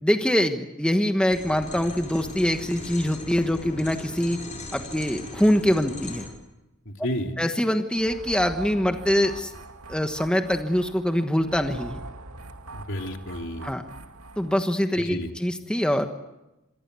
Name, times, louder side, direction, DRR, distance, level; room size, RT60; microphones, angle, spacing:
voice 1, 0.0-4.4 4.7-6.3 7.4-9.5 9.9-12.0 13.6-13.8 14.4-16.1, equal, 5° left, 5 dB, 1.2 m, -24 dB
sound 1, 1.3-6.3, left 1 dB, 35° left, 6.1 m, -38 dB
voice 2, 6.8-7.3 12.7-13.7 15.0-15.3, equal, 60° left, 3 dB, 3.3 m, -31 dB
sound 2, 7.9-14.8, right 2 dB, 90° right, 2.3 m, -43 dB
27.0 x 23.0 x 8.3 m, 1.0 s
head